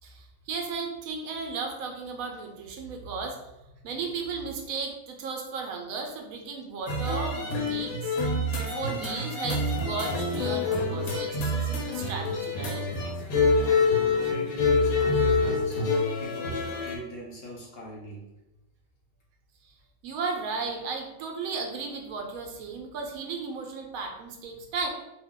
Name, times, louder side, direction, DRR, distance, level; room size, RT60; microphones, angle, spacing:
voice 1, 0.0-3.4 3.8-8.1 8.6-12.8 20.0-24.9, right 4 dB, 85° right, 2 dB, 1.0 m, -35 dB
sound 1, 6.9-17.0, left 3 dB, 90° left, 1.2 m, -26 dB
voice 2, 13.5-18.3, equal, 55° left, -3 dB, 0.7 m, -42 dB
2.7 x 2.3 x 3.5 m, 0.95 s
omnidirectional pair, 1.4 m